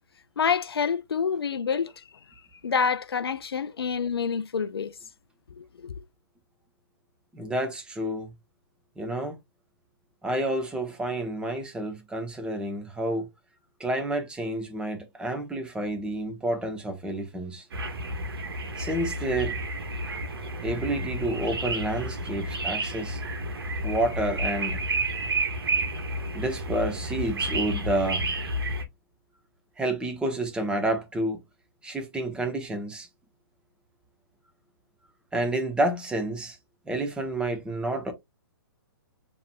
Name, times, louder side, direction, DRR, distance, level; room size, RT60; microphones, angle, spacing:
voice 1, 0.4-2.0 2.6-4.9 5.5-5.9, left 6 dB, 85° left, 0.5 m, -27 dB
voice 2, 7.3-8.3 9.0-9.4 10.2-13.3 13.8-17.7 18.8-19.5 20.6-23.2 23.8-24.8 26.3-28.2 29.8-31.4 31.8-33.1 35.3-36.6 36.9-38.1, right 1 dB, 5° right, 1.0 m, -29 dB
sound 1, 17.7-28.8, right 1 dB, 75° right, 1.3 m, -31 dB
6.9 x 3.0 x 2.2 m
hypercardioid pair, 130°, 13 cm